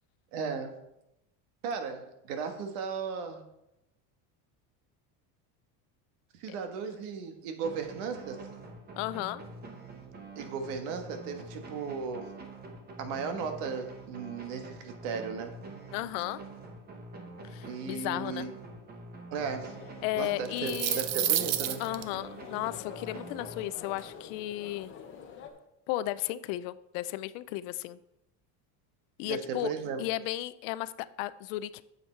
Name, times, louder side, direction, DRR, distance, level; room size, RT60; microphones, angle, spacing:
voice 1, 0.3-0.7 1.6-3.4 6.4-8.5 10.3-12.3 13.0-15.5 17.6-18.5 19.3-19.7 20.2-21.8 29.2-30.0, right 5 dB, 75° right, 7 dB, 1.6 m, -36 dB
sound 1, 7.6-24.1, right 2 dB, 20° right, 1.2 m, -46 dB
voice 2, 9.0-9.4 15.9-16.4 17.4-18.5 20.0-21.0 21.8-24.9 25.9-28.0 29.2-29.7 30.0-31.8, left 15 dB, 60° left, 16 dB, 0.5 m, -34 dB
sound 2, 19.7-25.5, left 7 dB, 25° left, 0.8 m, -47 dB
sound 3, 20.4-22.0, right 12 dB, 40° right, 0.5 m, -29 dB
9.1 x 7.3 x 4.5 m, 0.85 s
cardioid pair, 175°, 45 cm